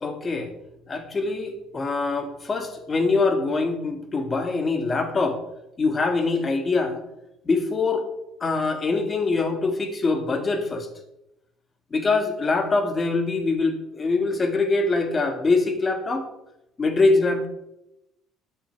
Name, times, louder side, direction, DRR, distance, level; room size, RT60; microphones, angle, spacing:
voice 1, 0.0-0.5 0.9-5.4 5.8-7.0 7.5-8.1 8.4-10.9 11.9-16.3 16.8-17.5, left 3 dB, 25° left, 7 dB, 2.1 m, -23 dB
13.5 x 9.0 x 4.7 m, 0.87 s
cardioid pair, 115°, 0 cm